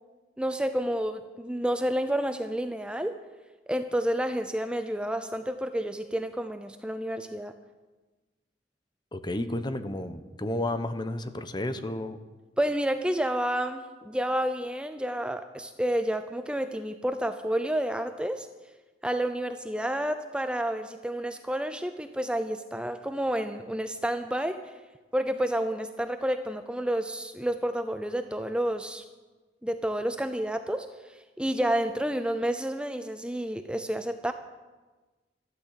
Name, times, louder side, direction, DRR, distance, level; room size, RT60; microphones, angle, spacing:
voice 1, 0.4-3.2 3.7-7.5 12.6-18.5 19.0-24.6 25.1-29.0 29.6-30.9 31.4-34.3, right 1 dB, 5° right, 8 dB, 0.6 m, -30 dB
voice 2, 9.1-12.2, left 1 dB, 25° left, 10 dB, 0.9 m, -32 dB
13.0 x 12.5 x 8.2 m, 1.2 s
head